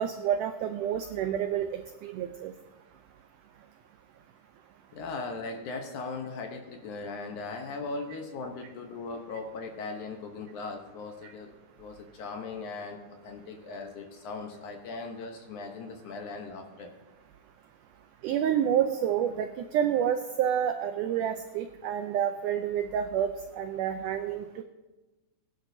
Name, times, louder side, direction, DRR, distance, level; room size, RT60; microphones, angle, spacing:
voice 1, 0.0-2.5 18.2-24.6, right 9 dB, 90° right, 7 dB, 1.8 m, -29 dB
voice 2, 4.9-16.9, left 3 dB, 70° left, 3 dB, 2.1 m, -39 dB
22.0 x 10.5 x 2.7 m, 1.1 s
omnidirectional pair, 4.3 m